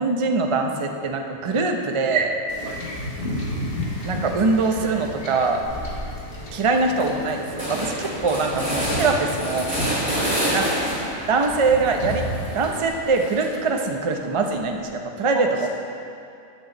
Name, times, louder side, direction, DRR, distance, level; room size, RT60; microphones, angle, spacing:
voice 1, 0.0-2.3 4.0-5.6 6.5-9.6 10.5-10.6 11.3-12.3 12.5-15.7, right 3 dB, 40° right, 3 dB, 0.4 m, -23 dB
Wind / Ocean / Boat Water vehicle, 2.5-12.9, left 1 dB, 40° left, 1.6 m, -33 dB
sound 1, 5.6-6.1 6.5-6.6 6.8-11.3 11.6-13.8, equal, 5° right, 2.3 m, -28 dB
voice 2, 9.1-9.8 10.1-10.5 15.3-15.7, right 2 dB, 80° right, -3 dB, 2.0 m, -37 dB
11.0 x 4.6 x 7.6 m, 2.5 s
omnidirectional pair, 1.5 m